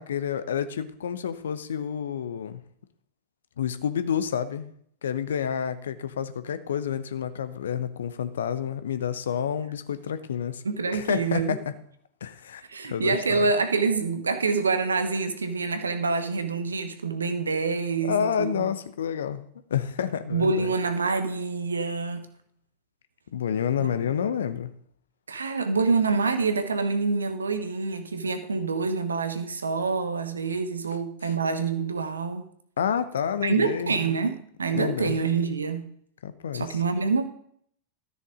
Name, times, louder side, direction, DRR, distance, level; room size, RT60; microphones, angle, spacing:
voice 1, 0.0-2.6 3.6-4.7 5.0-10.6 10.9-11.7 12.2-12.6 12.9-13.4 18.0-19.4 19.7-20.7 23.3-24.7 31.2-31.3 32.8-34.1 34.7-35.2 36.2-36.7, left 8 dB, 65° left, 0.8 m, -29 dB
voice 2, 10.6-11.6 12.7-18.6 20.3-22.3 23.8-23.9 25.3-32.5 33.4-35.9 36.5-37.3, right 4 dB, 75° right, 1.1 m, -26 dB
13.5 x 6.9 x 5.0 m
figure-of-eight pair, 90°, 0 cm